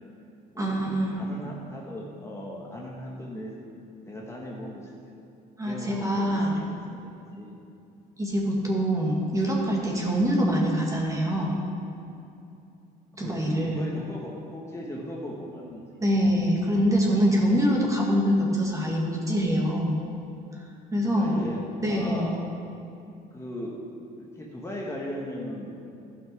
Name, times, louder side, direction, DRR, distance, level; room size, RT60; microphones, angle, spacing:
voice 1, 0.6-1.2 5.6-6.6 8.2-11.5 13.2-13.8 16.0-20.0 20.9-21.4 21.8-22.3, equal, 20° right, -2 dB, 2.0 m, -24 dB
voice 2, 1.1-3.7 4.0-4.9 5.7-7.5 13.2-15.8 21.0-21.6 21.8-22.3 23.3-23.8 24.2-25.7, left 1 dB, 15° left, -3 dB, 1.3 m, -38 dB
14.0 x 5.9 x 4.7 m, 2.7 s
cardioid pair, 110°, 17 cm